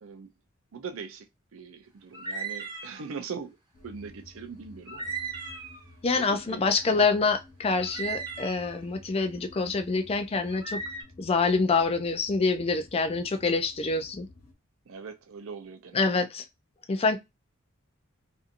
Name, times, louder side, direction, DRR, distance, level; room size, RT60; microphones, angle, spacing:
voice 1, 0.7-1.3 1.5-3.6 3.8-5.2 6.1-6.6 14.9-16.3, right 5 dB, 70° right, 0.5 m, -41 dB
sound 1, 2.1-3.1 4.9-5.9 7.8-8.8 10.5-11.0, right 4 dB, 20° right, 0.9 m, -36 dB
sound 2, 3.7-14.5, left 1 dB, 50° left, 1.0 m, -52 dB
voice 2, 6.0-10.8 11.2-14.3 15.9-16.4 16.9-17.2, left 4 dB, 30° left, 0.4 m, -26 dB
2.6 x 2.6 x 2.5 m
head